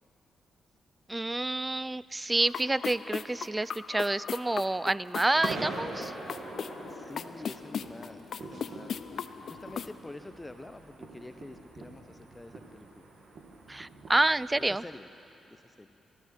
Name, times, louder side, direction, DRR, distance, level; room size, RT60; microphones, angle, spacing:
voice 1, 1.1-6.1 13.7-14.8, right 2 dB, 20° right, 19 dB, 0.3 m, -28 dB
sound 1, 2.4-9.9, left 7 dB, 65° left, 0.4 m, -39 dB
sound 2, 5.3-14.8, right 3 dB, 60° right, 1.9 m, -43 dB
voice 2, 6.9-13.1 14.7-15.1 15.5-15.9, left 2 dB, 20° left, 9 dB, 0.8 m, -47 dB
19.5 x 13.0 x 4.3 m, 2.8 s
supercardioid pair, 50°, 0 cm